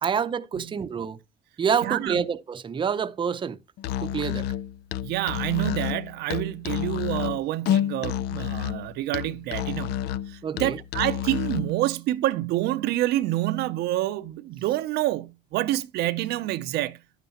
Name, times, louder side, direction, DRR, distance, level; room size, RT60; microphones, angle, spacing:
voice 1, 0.0-1.2 1.6-3.6 4.0-4.5 10.4-10.8, right 7 dB, 30° right, 0.6 m, -27 dB
voice 2, 1.8-2.2 5.0-10.0 10.3-17.0, right 15 dB, 80° right, 0.5 m, -27 dB
Musical instrument, 3.8-11.7, left 11 dB, 75° left, 0.4 m, -29 dB
10.5 x 9.1 x 2.9 m
cardioid pair, 110°, 17 cm